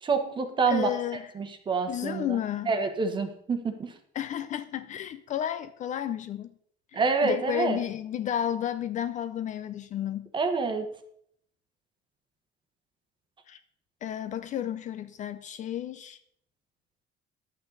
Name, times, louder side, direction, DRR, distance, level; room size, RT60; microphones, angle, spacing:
voice 1, 0.0-1.0 1.3-2.4 2.7-3.9 6.9-7.8 10.3-10.9, right 4 dB, 25° right, 7 dB, 1.1 m, -27 dB
voice 2, 0.7-1.3 1.9-2.7 4.1-6.5 6.9-10.3 13.5-13.6 14.0-16.2, left 10 dB, 40° left, 11 dB, 0.5 m, -32 dB
11.0 x 8.3 x 3.9 m, 0.68 s
cardioid pair, 170°, 20 cm